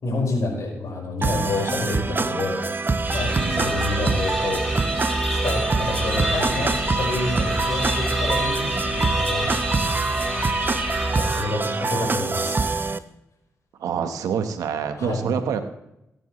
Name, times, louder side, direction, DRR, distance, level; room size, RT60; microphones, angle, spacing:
voice 1, 0.0-2.8 3.1-4.7 5.3-9.5 11.1-12.6 15.0-15.2, left 2 dB, 70° left, -1 dB, 5.1 m, -28 dB
sound 1, 1.2-13.0, right 3 dB, 35° right, 0.7 m, -25 dB
sound 2, 3.0-11.7, right 1 dB, ahead, 3.3 m, -27 dB
voice 2, 3.3-3.8 13.8-15.6, right 7 dB, 90° right, 8 dB, 1.2 m, -27 dB
19.0 x 10.0 x 3.2 m, 0.85 s
cardioid pair, 50°, 6 cm